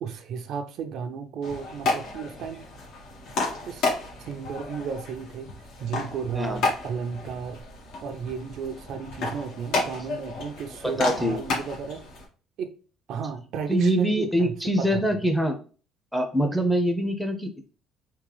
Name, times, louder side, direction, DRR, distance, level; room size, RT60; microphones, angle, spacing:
voice 1, 0.0-2.6 3.6-3.9 4.2-5.5 5.8-7.6 8.0-12.0 12.6-12.8 13.1-15.0, right 6 dB, 65° right, 0.6 m, -33 dB
sound 1, 1.4-12.3, left 3 dB, 75° left, 1.3 m, -32 dB
voice 2, 10.8-11.4 13.7-15.6 16.1-17.7, equal, ahead, 0.6 m, -24 dB
3.7 x 2.9 x 3.3 m
cardioid pair, 115°, 0 cm